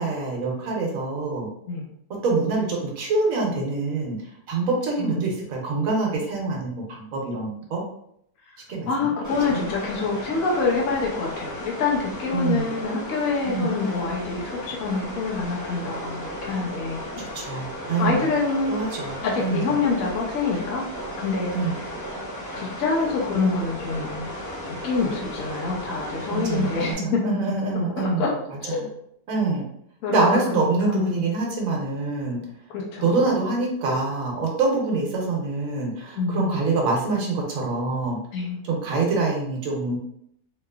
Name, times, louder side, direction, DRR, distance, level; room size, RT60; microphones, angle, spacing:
voice 1, 0.0-1.5 2.1-4.2 4.5-7.8 8.7-9.1 12.3-12.7 13.4-13.7 17.2-18.3 18.7-19.8 21.5-21.7 26.3-28.3 28.7-28.9 29.3-29.6 30.1-32.4 33.0-38.2 38.6-40.0, right 3 dB, 65° right, -1 dB, 1.2 m, -25 dB
voice 2, 5.0-5.4 8.5-8.6 8.9-17.0 18.0-18.8 19.2-21.5 22.5-24.3 24.8-27.2 28.0-28.3 28.6-28.9 30.0-31.2 32.7-33.3 36.2-36.5 38.3-38.6, left 4 dB, 65° left, -3 dB, 1.0 m, -26 dB
sound 1, 9.2-26.9, equal, 20° left, 0.5 m, -35 dB
2.9 x 2.9 x 2.3 m, 0.72 s
omnidirectional pair, 1.6 m